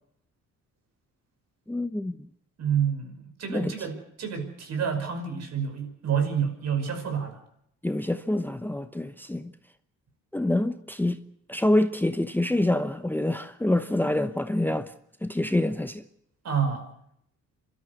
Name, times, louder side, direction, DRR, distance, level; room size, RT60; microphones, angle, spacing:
voice 1, 1.7-2.2 3.5-3.7 7.8-9.5 10.3-11.2 11.5-14.9 15.2-16.0, left 1 dB, 5° left, 0.9 m, -26 dB
voice 2, 2.6-7.4 16.4-16.9, right 7 dB, 60° right, 5.6 m, -28 dB
27.0 x 13.0 x 8.1 m
cardioid pair, 90°, 30 cm